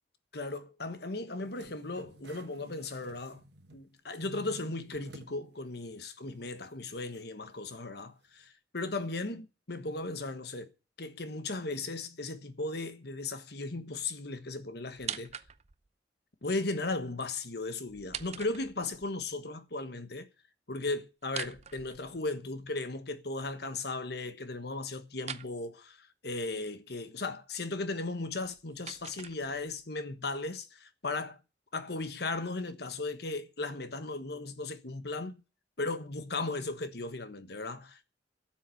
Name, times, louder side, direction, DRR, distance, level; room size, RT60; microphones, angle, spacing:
voice 1, 0.3-3.4 3.7-10.7 11.0-15.3 16.4-20.3 20.7-31.4 31.7-35.4 35.8-38.1, left 3 dB, 65° left, 1.4 m, -36 dB
sound 1, 1.4-3.9 4.2-5.4 5.8-5.9 7.1-7.2, right 1 dB, 65° right, 1.4 m, -52 dB
sound 2, 14.9-15.9 17.9-19.1 21.2-22.5 25.2-25.5 28.2-29.9, right 8 dB, 40° right, 0.7 m, -43 dB
12.0 x 7.5 x 8.4 m
head